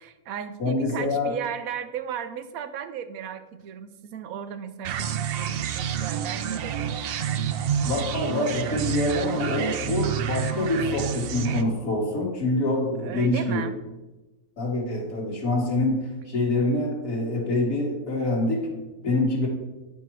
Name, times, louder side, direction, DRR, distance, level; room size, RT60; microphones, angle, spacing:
voice 1, 0.0-7.0 13.0-13.8, right 8 dB, 80° right, 11 dB, 1.1 m, -35 dB
voice 2, 0.6-1.3 7.8-13.6 14.6-16.0 16.3-18.7 19.0-19.5, left 2 dB, 75° left, -3 dB, 2.1 m, -25 dB
sound 1, 4.8-11.6, right 9 dB, 65° right, 0.6 m, -28 dB
10.0 x 4.7 x 4.6 m, 1.1 s
omnidirectional pair, 1.5 m